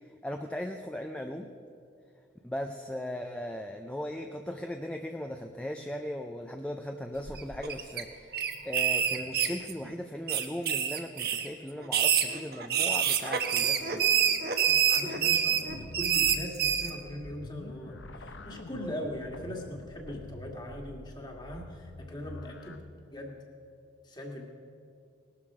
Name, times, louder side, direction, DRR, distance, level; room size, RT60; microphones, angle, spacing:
voice 1, 0.2-1.5 2.4-14.1, left 1 dB, 5° left, 4 dB, 0.5 m, -38 dB
sound 1, 7.3-8.0 8.3-9.9 10.3-11.5 11.8-16.9, right 8 dB, 55° right, 1.1 m, -27 dB
voice 2, 14.6-22.8 23.1-23.4 24.0-24.4, equal, 25° left, 1 dB, 1.9 m, -40 dB
sound 2, 15.7-22.8, left 1 dB, 85° left, 1.0 m, -46 dB
19.0 x 12.5 x 4.9 m, 2.5 s
head